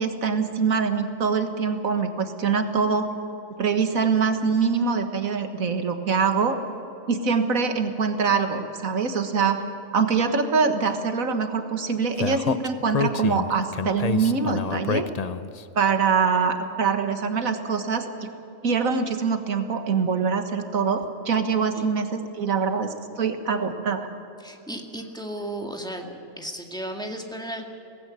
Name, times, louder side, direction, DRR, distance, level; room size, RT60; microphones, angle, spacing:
voice 1, 0.0-3.1 3.6-6.6 7.1-9.6 9.9-15.1 15.8-18.3 18.6-22.9 23.2-24.1, right 5 dB, 85° right, 7 dB, 1.9 m, -24 dB
Speech, 12.2-15.6, left 5 dB, 45° left, 0.5 m, -27 dB
voice 2, 24.4-26.1 26.4-27.7, right 1 dB, 5° left, 2 dB, 1.9 m, -34 dB
18.5 x 16.0 x 9.5 m, 2.9 s
omnidirectional pair, 1.4 m